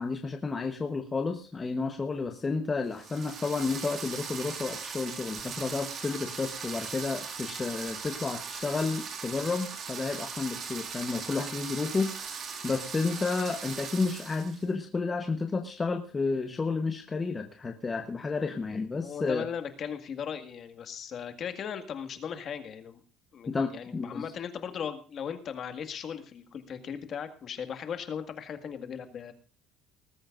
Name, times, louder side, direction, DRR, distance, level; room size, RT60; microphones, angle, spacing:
voice 1, 0.0-19.5 23.5-24.3, left 4 dB, 15° left, 5 dB, 1.0 m, -31 dB
sound 1, 2.9-14.6, right 6 dB, 35° right, 2.2 m, -39 dB
voice 2, 19.0-23.0 23.3-29.3, left 7 dB, 35° left, 8 dB, 1.8 m, -38 dB
19.5 x 14.0 x 2.5 m, 0.40 s
cardioid pair, 170°, 0 cm